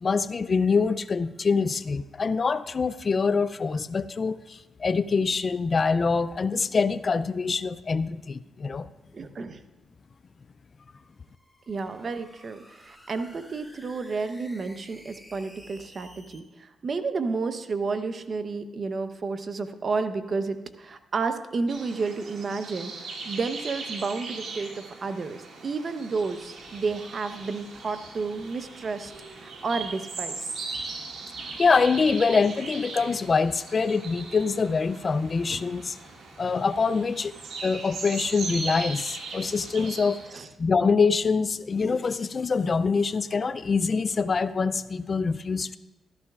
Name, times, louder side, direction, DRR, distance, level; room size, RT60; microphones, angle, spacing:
voice 1, 0.0-8.9 31.6-36.0 36.4-37.3 37.6-40.2 40.6-45.8, left 4 dB, 45° left, 15 dB, 0.4 m, -25 dB
voice 2, 9.1-9.6 11.7-30.5 40.3-40.5, right 4 dB, 50° right, 9 dB, 0.8 m, -31 dB
sound 1, 11.0-16.4, equal, ahead, 1.9 m, -52 dB
sound 2, 21.7-40.3, right 3 dB, 70° right, 1.9 m, -39 dB
14.0 x 13.0 x 2.4 m, 1.1 s
cardioid pair, 65°, 0 cm